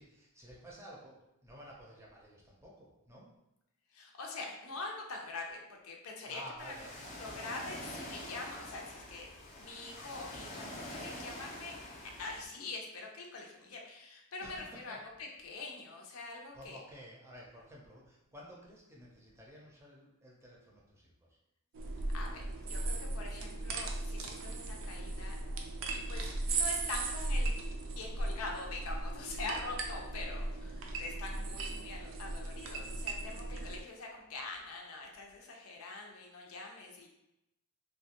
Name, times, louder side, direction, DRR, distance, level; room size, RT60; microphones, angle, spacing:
voice 1, 0.0-3.3 6.3-7.0 10.6-10.7 14.4-15.0 16.5-21.4, equal, 15° right, -3 dB, 0.6 m, -52 dB
voice 2, 3.9-6.8 7.1-9.3 9.6-11.8 12.2-14.6 14.8-16.8 22.1-25.3 25.9-27.5 28.0-37.1, left 3 dB, 90° left, 0 dB, 0.6 m, -44 dB
Ocean, 6.6-12.4, left 1 dB, 35° left, 0.5 m, -46 dB
sound 1, 21.7-33.8, right 2 dB, 65° right, 0.4 m, -37 dB
3.0 x 2.2 x 2.8 m, 0.88 s
head